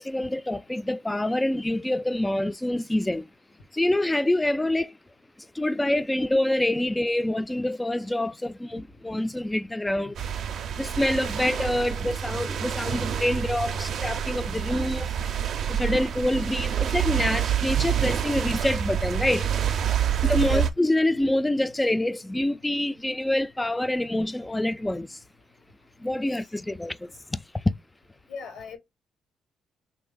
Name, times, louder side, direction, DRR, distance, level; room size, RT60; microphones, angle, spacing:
voice 1, 0.0-3.2 3.8-4.9 5.6-10.1 10.8-15.1 15.7-19.5 20.2-25.1 26.0-27.0, left 1 dB, 10° left, 0.3 m, -26 dB
sound 1, 10.2-20.7, right 9 dB, 65° right, 0.5 m, -27 dB
voice 2, 20.2-20.6 26.1-26.2 28.3-28.8, left 5 dB, 80° left, 1.5 m, -40 dB
3.3 x 2.6 x 3.7 m
cardioid pair, 90°, 0 cm